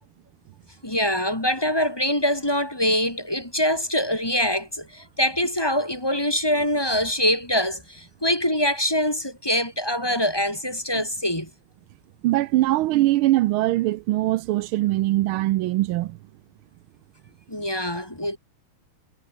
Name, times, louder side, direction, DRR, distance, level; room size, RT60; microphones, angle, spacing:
voice 1, 0.8-11.5 17.5-18.4, equal, 10° left, 2.3 m, -24 dB
voice 2, 12.2-16.2, right 17 dB, 80° right, 1.4 m, -22 dB
omnidirectional pair, 2.4 m